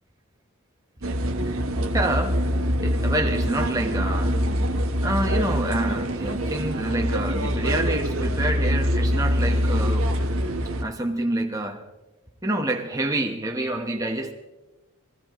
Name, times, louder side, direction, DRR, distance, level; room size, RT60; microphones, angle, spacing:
sound 1, 1.0-10.8, equal, 65° right, 1.0 m, -24 dB
voice 1, 1.4-2.4 2.8-4.5 5.0-10.1 10.8-11.8 12.4-14.3, right 1 dB, 15° right, 1.0 m, -27 dB
22.0 x 16.5 x 3.0 m
head